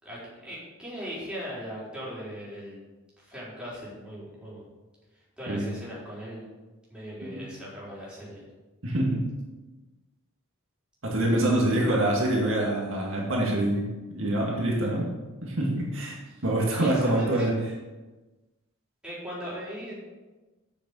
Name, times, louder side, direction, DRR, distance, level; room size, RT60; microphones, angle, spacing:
voice 1, 0.0-2.8 3.2-4.6 5.4-6.4 6.9-8.5 16.3-17.5 19.0-20.1, equal, 5° right, -8 dB, 4.0 m, -39 dB
voice 2, 8.8-9.2 11.0-15.1 15.4-16.2 16.4-17.5, right 1 dB, 60° right, -2 dB, 2.1 m, -25 dB
8.3 x 6.6 x 7.1 m, 1.2 s
head